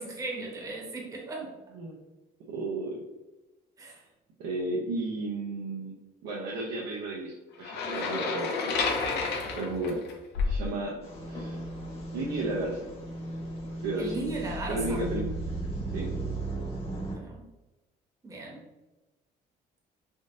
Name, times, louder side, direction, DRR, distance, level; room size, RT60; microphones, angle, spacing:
voice 1, 0.0-1.5 3.8-4.0 14.0-15.0 17.0-17.4 18.2-18.6, right 2 dB, 20° right, -2 dB, 0.9 m, -37 dB
voice 2, 2.5-2.9 4.4-6.0 6.2-8.5 9.6-10.0 10.4-11.0 11.3-11.6 12.1-12.9 13.8-14.3 14.7-15.3 15.9-16.1, right 2 dB, 80° right, -3 dB, 0.6 m, -33 dB
sound 1, 7.6-10.7, left 4 dB, 80° left, 0.6 m, -30 dB
sound 2, 11.0-17.1, right 1 dB, 35° left, 1.1 m, -36 dB
3.6 x 2.6 x 2.5 m, 1.1 s
cardioid pair, 110°, 17 cm